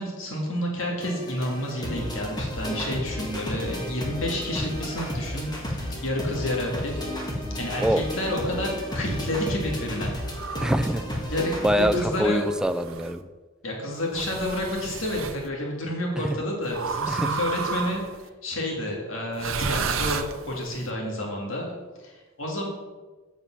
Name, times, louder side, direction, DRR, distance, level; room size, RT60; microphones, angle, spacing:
voice 1, 0.0-6.9 7.3-10.5 11.1-12.5 13.6-18.0 18.4-22.7, left 1 dB, 75° left, -1 dB, 1.9 m, -30 dB
sound 1, 1.0-12.0, left 1 dB, 20° left, 1.7 m, -33 dB
sound 2, 10.3-11.0 11.9-13.1 14.1-15.4 16.7-18.2 19.3-20.8, right 5 dB, 80° right, 0.7 m, -32 dB
voice 2, 10.6-11.0 11.6-13.2 17.1-17.3, equal, 5° right, 9 dB, 0.4 m, -24 dB
8.2 x 7.2 x 5.8 m, 1.3 s
head